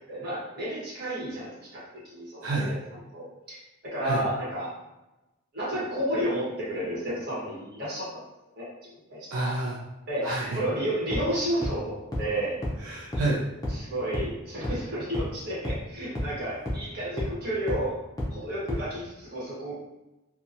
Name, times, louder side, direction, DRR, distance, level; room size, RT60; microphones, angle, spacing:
voice 1, 0.1-2.7 3.1-4.7 5.5-8.1 8.5-9.4 10.1-10.3 10.5-12.5 13.7-18.0 18.3-19.7, right 1 dB, 50° right, -8 dB, 1.2 m, -32 dB
voice 2, 2.4-2.7 4.0-4.2 9.3-9.8 10.2-10.6 12.8-13.5, right 2 dB, 85° right, -4 dB, 0.5 m, -29 dB
sound 1, 11.1-11.2 11.6-11.7 12.1-12.2 12.6-12.7 13.1-13.2 13.6-13.7 14.1-14.2 14.6-14.7 15.1-15.2 15.6-15.7 16.1-16.2 16.7-16.8 17.2-17.3 17.7-17.8 18.2-18.3 18.7-18.8, left 1 dB, 20° left, 0.5 m, -29 dB
2.9 x 2.2 x 2.5 m, 0.97 s
head